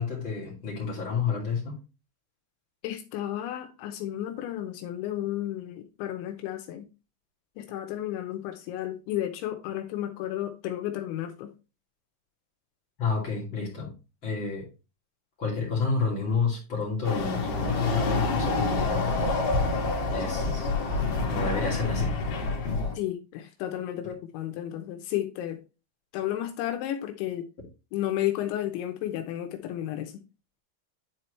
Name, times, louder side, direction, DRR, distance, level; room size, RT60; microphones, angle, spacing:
voice 1, 0.0-1.8 13.0-13.9 14.2-14.7 15.4-19.4 20.1-20.7 21.3-22.1, left 4 dB, 35° left, 2.5 m, -30 dB
voice 2, 2.8-6.9 7.6-11.5 23.0-25.6 26.1-27.5 27.9-30.2, left 12 dB, 85° left, 3.1 m, -32 dB
Chatter / Car passing by / Motorcycle, 17.0-22.9, left 3 dB, 55° left, 3.0 m, -27 dB
10.5 x 4.5 x 3.2 m
omnidirectional pair, 5.4 m